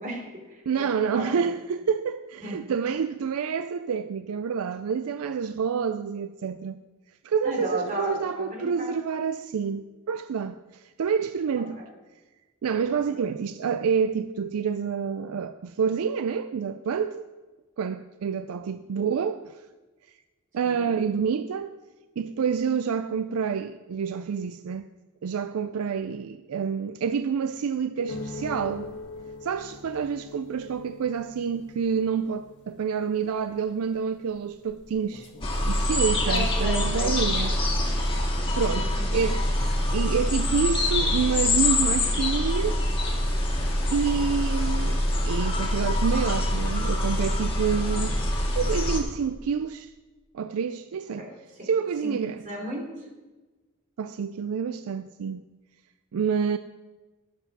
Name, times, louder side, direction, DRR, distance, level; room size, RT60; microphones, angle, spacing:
voice 1, 0.0-0.9 1.1-1.5 2.4-2.6 7.4-9.0 11.8-11.9 20.6-20.9 36.2-37.5 38.7-39.1 51.2-51.3 51.6-51.7 52.0-52.1 52.4-52.8, equal, 40° right, 3.1 m, -34 dB
voice 2, 0.7-6.8 7.2-11.8 12.6-17.3 17.8-19.4 20.5-21.8 22.2-24.9 25.2-28.9 29.4-35.3 35.7-37.6 38.6-39.4 39.9-42.8 43.9-45.0 45.2-48.2 48.6-49.9 50.3-51.3 51.6-52.4 54.0-55.4 56.1-56.6, right 6 dB, 75° right, 0.4 m, -28 dB
sound 1, 28.1-37.3 37.6-38.2, left 2 dB, 55° left, 1.4 m, -43 dB
sound 2, 35.4-49.0, left 1 dB, 25° left, 1.8 m, -25 dB
11.5 x 7.8 x 6.1 m
head